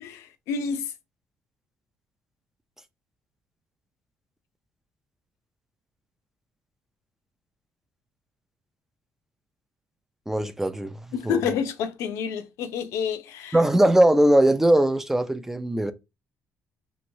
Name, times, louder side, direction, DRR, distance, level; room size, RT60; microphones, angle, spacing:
voice 1, 0.0-0.9 11.1-13.6, left 7 dB, 85° left, 0.5 m, -29 dB
voice 2, 10.3-10.9 11.3-11.4 13.5-15.9, right 1 dB, 5° right, 0.3 m, -20 dB
3.0 x 2.9 x 2.6 m
cardioid pair, 130°, 5 cm